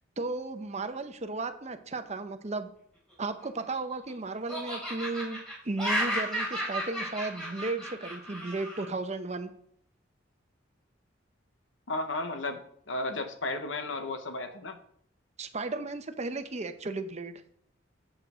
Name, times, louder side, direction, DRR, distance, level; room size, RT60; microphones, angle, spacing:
voice 1, 0.2-2.7 3.2-5.4 5.6-9.5 15.4-17.4, right 3 dB, 35° right, 9 dB, 0.8 m, -34 dB
Laughter, 3.3-4.1 4.5-8.9, equal, 5° left, 4.1 m, -33 dB
voice 2, 11.9-14.8, left 2 dB, 80° left, 8 dB, 1.0 m, -34 dB
7.6 x 6.9 x 5.0 m, 0.66 s
head